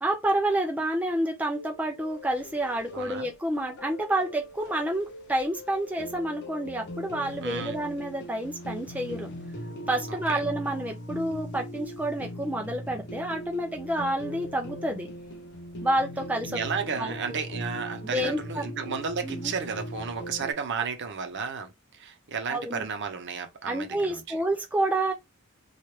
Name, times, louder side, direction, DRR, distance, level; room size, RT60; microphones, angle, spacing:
voice 1, 0.0-9.3 9.9-15.1 15.8-16.6 17.0-17.4 18.0-18.6 19.2-19.5 20.8-20.9 22.5-22.9 23.7-25.1, right 1 dB, 5° right, 0.5 m, -29 dB
sound 1, 1.5-20.5, equal, 55° left, 0.7 m, -40 dB
voice 2, 2.9-3.3 7.4-7.8 10.1-10.4 16.5-24.4, right 6 dB, 55° right, 0.7 m, -33 dB
3.1 x 2.4 x 3.0 m
head